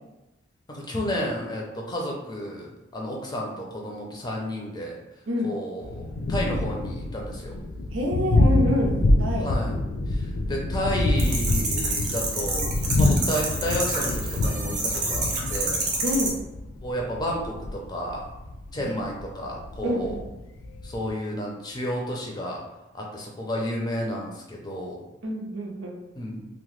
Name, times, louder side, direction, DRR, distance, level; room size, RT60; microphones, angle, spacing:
voice 1, 0.7-5.0 5.4-7.5 9.4-9.8 10.1-12.7 13.0-15.9 16.8-18.2 18.7-20.2 20.8-22.6 22.9-25.0 26.2-26.5, equal, 20° left, -1 dB, 0.5 m, -31 dB
Thunder, 5.8-21.1, left 2 dB, 80° left, 0.4 m, -26 dB
voice 2, 7.9-9.5 16.0-16.4 18.8-19.0 19.8-20.3 25.2-26.0, left 1 dB, 85° right, -1 dB, 0.6 m, -27 dB
sound 1, 11.2-16.3, right 3 dB, 40° right, 0.6 m, -28 dB
2.8 x 2.1 x 3.1 m, 1.0 s
head